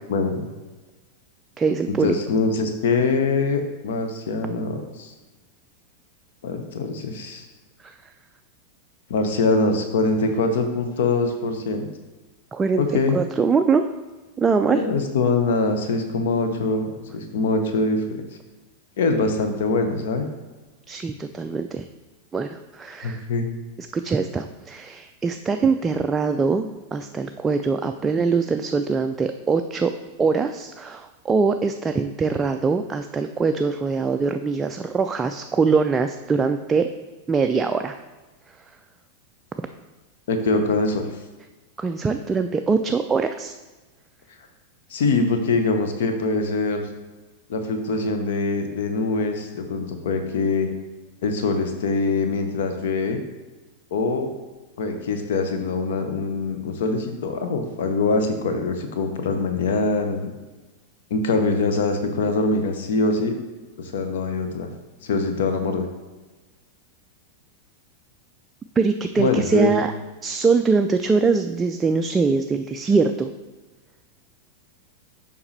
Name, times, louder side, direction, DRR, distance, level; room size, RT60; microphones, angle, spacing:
voice 1, 0.1-0.4 1.9-5.1 6.4-7.4 9.1-11.9 12.8-13.2 14.7-18.2 19.0-20.3 23.0-23.5 40.3-41.1 44.9-46.9 47.5-50.7 51.2-53.2 53.9-54.3 54.8-60.3 61.1-63.3 63.8-64.7 65.0-65.8 69.2-69.8, left 3 dB, 55° left, 6 dB, 0.8 m, -23 dB
voice 2, 1.6-2.1 7.8-7.9 12.5-12.8 13.1-13.9 14.4-14.8 20.9-21.8 22.3-23.2 23.9-29.9 30.2-36.9 37.3-38.0 41.8-43.5 68.8-69.9 70.2-73.3, right 4 dB, 15° right, 7 dB, 0.3 m, -22 dB
7.0 x 5.2 x 3.3 m, 1.2 s
figure-of-eight pair, 90°, 0 cm